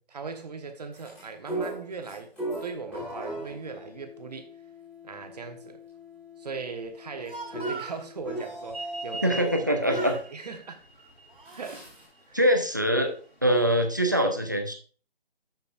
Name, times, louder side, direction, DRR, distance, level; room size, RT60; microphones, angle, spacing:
voice 1, 0.1-2.3 2.6-4.5 5.0-5.8 6.4-10.8 11.5-11.9 12.3-12.4, right 4 dB, 40° right, 1.2 m, -39 dB
sound 1, 0.9-10.2 11.4-12.0, right 1 dB, 5° left, 2.3 m, -38 dB
Speech, 7.0-8.0 9.4-9.6 9.9-10.3 11.0-11.8, right 3 dB, 60° right, 1.9 m, -41 dB
sound 2, 8.7-13.7, right 3 dB, 80° left, 2.9 m, -43 dB
voice 2, 9.2-10.1 12.3-13.1 13.4-14.7, equal, 20° right, 0.5 m, -23 dB
13.0 x 5.2 x 2.5 m
figure-of-eight pair, 155°, 31 cm